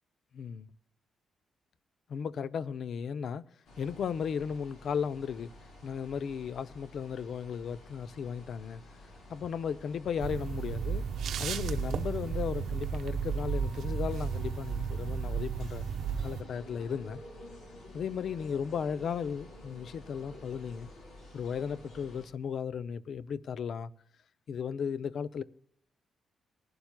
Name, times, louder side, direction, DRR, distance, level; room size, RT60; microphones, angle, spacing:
voice 1, 0.3-0.7 2.1-3.5 3.8-5.5 5.8-8.8 9.3-11.0 11.4-15.9 16.2-17.2 17.9-20.9 21.3-23.9 24.5-25.4, left 7 dB, 55° left, 0.5 m, -35 dB
sound 1, 3.6-22.3, left 1 dB, 80° left, 4.1 m, -51 dB
sound 2, 10.2-16.4, right 7 dB, 75° right, 0.9 m, -33 dB
19.5 x 11.5 x 2.2 m
cardioid pair, 145°, 0 cm